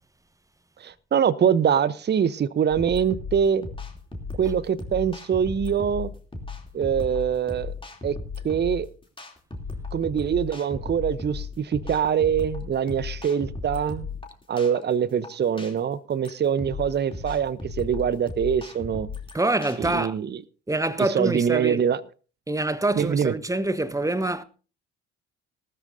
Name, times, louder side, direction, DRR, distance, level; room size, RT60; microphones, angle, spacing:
voice 1, 0.8-3.7 4.4-6.1 6.7-7.7 8.0-8.2 8.4-8.9 9.9-14.1 14.5-19.1 19.8-20.4 21.0-22.0 23.0-23.3, right 8 dB, 30° right, 0.8 m, -24 dB
sound 1, 2.7-19.9, left 4 dB, 15° left, 3.0 m, -36 dB
voice 2, 19.3-20.1 20.7-21.8 22.5-24.4, right 2 dB, 10° right, 1.0 m, -25 dB
18.5 x 13.5 x 2.7 m
figure-of-eight pair, 50°, 36 cm